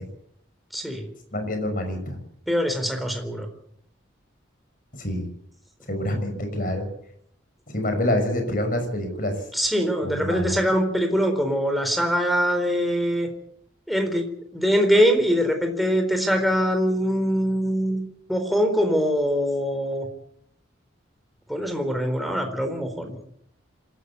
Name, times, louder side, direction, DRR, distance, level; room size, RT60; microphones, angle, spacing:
voice 1, 0.7-1.1 2.5-3.5 9.5-13.3 13.9-20.1 21.5-23.2, equal, ahead, 4 dB, 4.0 m, -23 dB
voice 2, 1.3-2.2 5.0-5.3 5.9-6.9 7.7-9.4 10.0-10.6, left 1 dB, 45° left, 6 dB, 6.2 m, -26 dB
27.0 x 14.0 x 8.4 m, 0.71 s
head